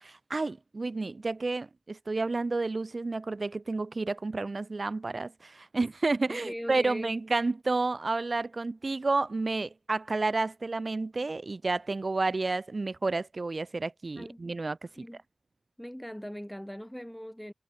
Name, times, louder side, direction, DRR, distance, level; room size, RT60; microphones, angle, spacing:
voice 1, 0.0-14.8, right 3 dB, 45° right, 0.5 m, -30 dB
voice 2, 6.3-7.1 14.2-14.4 15.0-15.2 15.8-17.5, equal, 5° left, 1.5 m, -40 dB
wide cardioid pair, 80°, 0 cm